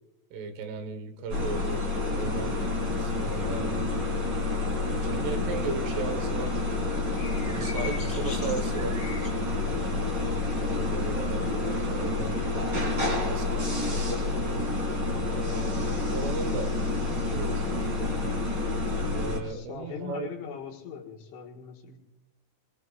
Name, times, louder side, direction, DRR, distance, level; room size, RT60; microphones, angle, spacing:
voice 1, 0.3-2.6 3.0-4.2 4.6-6.9 7.5-9.0 9.6-14.6 15.3-16.7 17.2-18.1 19.1-20.3, right 4 dB, 75° right, 7 dB, 3.6 m, -37 dB
sound 1, 1.3-19.4, left 2 dB, 30° right, 2.1 m, -29 dB
sound 2, 7.1-9.3, left 4 dB, 20° left, 2.8 m, -44 dB
voice 2, 19.4-22.0, left 6 dB, 70° left, 0 dB, 3.6 m, -40 dB
25.5 x 20.5 x 2.4 m, 0.95 s
omnidirectional pair, 6.0 m